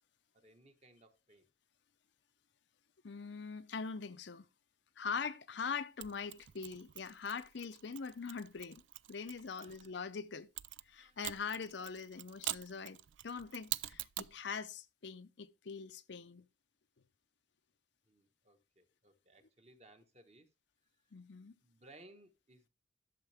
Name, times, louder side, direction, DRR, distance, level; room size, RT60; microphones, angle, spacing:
voice 1, 0.3-1.5 9.5-10.0 11.0-11.2 18.1-20.5 20.9-21.0 21.6-22.7, right 2 dB, 35° right, 1.3 m, -62 dB
voice 2, 3.0-4.4 5.0-8.8 9.1-10.5 10.9-16.4 21.1-21.5, left 5 dB, 65° left, 0.6 m, -42 dB
Mechanisms, 6.0-9.9 10.6-14.4, right 15 dB, 70° right, 0.4 m, -45 dB
11.5 x 6.6 x 3.4 m
head